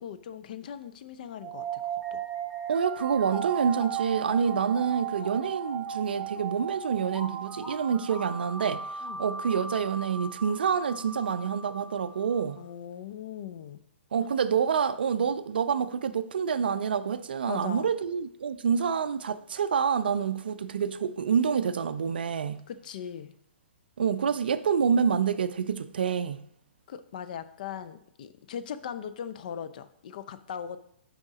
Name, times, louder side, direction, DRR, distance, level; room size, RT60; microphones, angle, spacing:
voice 1, 0.0-2.2 9.0-9.3 12.6-13.8 17.5-17.9 22.7-23.3 26.9-30.8, left 8 dB, 45° left, 0.5 m, -39 dB
sound 1, 1.4-12.4, right 7 dB, 15° right, 0.9 m, -36 dB
voice 2, 2.7-8.8 9.2-12.6 14.1-22.6 24.0-26.4, right 7 dB, 55° right, 0.4 m, -27 dB
7.1 x 4.9 x 3.9 m
figure-of-eight pair, 120°, 6 cm